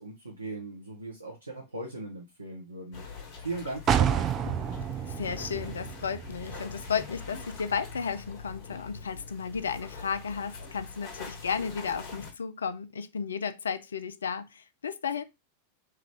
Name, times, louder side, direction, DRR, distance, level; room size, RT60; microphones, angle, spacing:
voice 1, 0.0-3.0 3.4-4.8, right 2 dB, 80° right, 0.8 m, -39 dB
sound 1, 2.9-12.3, left 5 dB, 45° left, 1.2 m, -43 dB
sound 2, 3.9-7.6 8.0-8.1, right 9 dB, 30° right, 0.3 m, -30 dB
voice 2, 5.1-15.2, left 6 dB, 70° left, 0.3 m, -33 dB
3.2 x 2.4 x 3.4 m
figure-of-eight pair, 90°, 0 cm